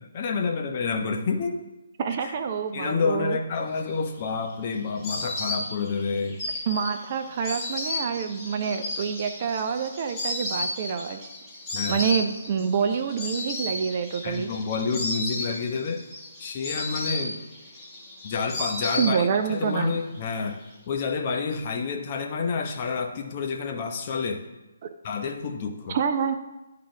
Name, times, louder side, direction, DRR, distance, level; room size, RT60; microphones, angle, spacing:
voice 1, 0.0-1.6 2.2-2.3 2.7-6.4 11.7-12.0 14.2-16.0 16.4-17.4 18.2-20.6 20.9-24.4 25.0-26.0, left 5 dB, 35° left, 3 dB, 0.9 m, -29 dB
voice 2, 2.0-3.4 6.7-11.2 11.9-14.5 19.0-19.9 25.9-26.3, right 6 dB, 35° right, 7 dB, 0.6 m, -27 dB
Insect, 3.9-19.6 19.9-20.7, left 2 dB, 15° left, 1.6 m, -34 dB
10.0 x 3.8 x 4.9 m, 1.0 s
figure-of-eight pair, 140°, 0 cm